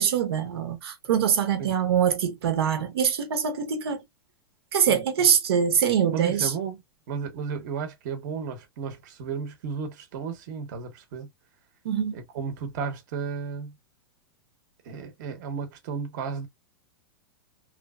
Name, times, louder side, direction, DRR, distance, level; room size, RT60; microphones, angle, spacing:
voice 1, 0.0-4.0 4.7-6.5 11.8-12.2, right 8 dB, 85° right, 0.8 m, -24 dB
voice 2, 4.9-5.3 6.1-6.8 7.1-11.3 12.1-13.8 14.8-16.5, right 6 dB, 50° right, 0.9 m, -34 dB
3.1 x 2.0 x 2.2 m
supercardioid pair, 150°, 13 cm